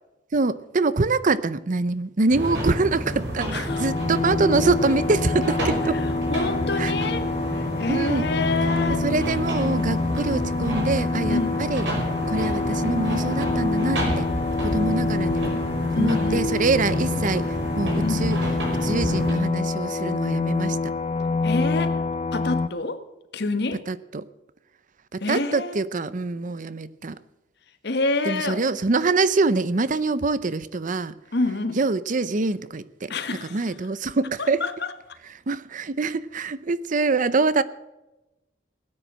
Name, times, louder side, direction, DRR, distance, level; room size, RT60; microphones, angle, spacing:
voice 1, 0.3-6.0 6.8-6.9 7.9-8.3 9.0-11.9 12.3-14.3 14.6-15.6 16.0-18.4 18.8-20.8 23.9-24.3 25.1-27.1 28.2-31.1 31.8-33.1 33.4-34.6 35.5-37.6, right 3 dB, 45° right, 0.7 m, -25 dB
sound 1, 2.3-19.3, right 1 dB, 75° right, 5.7 m, -30 dB
voice 2, 3.5-3.9 5.9-6.0 6.3-9.0 11.3-11.6 15.9-16.5 18.0-18.2 21.4-22.0 22.3-23.0 23.3-23.8 25.2-25.8 27.8-28.6 31.3-31.8 33.1-33.6 34.4-34.9, left 2 dB, 65° left, 1.5 m, -27 dB
sound 2, 3.7-22.7, left 3 dB, 35° left, 0.5 m, -26 dB
17.5 x 9.8 x 6.3 m
head